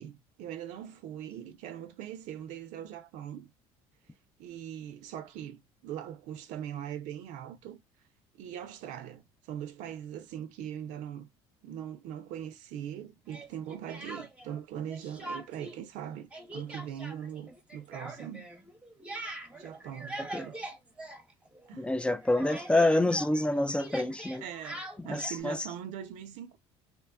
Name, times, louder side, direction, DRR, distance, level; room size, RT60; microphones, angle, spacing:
voice 1, 0.0-3.5 4.4-7.8 8.4-11.3 11.6-18.5 19.6-20.6 21.7-21.9 24.4-26.6, right 10 dB, 70° right, 0.5 m, -41 dB
Speech, 13.3-14.6 14.9-15.8 16.0-21.7 22.0-25.4, right 1 dB, 10° right, 0.9 m, -43 dB
voice 2, 21.8-24.4 25.1-25.7, left 2 dB, 10° left, 0.4 m, -27 dB
3.1 x 2.2 x 2.2 m
supercardioid pair, 90°, 13 cm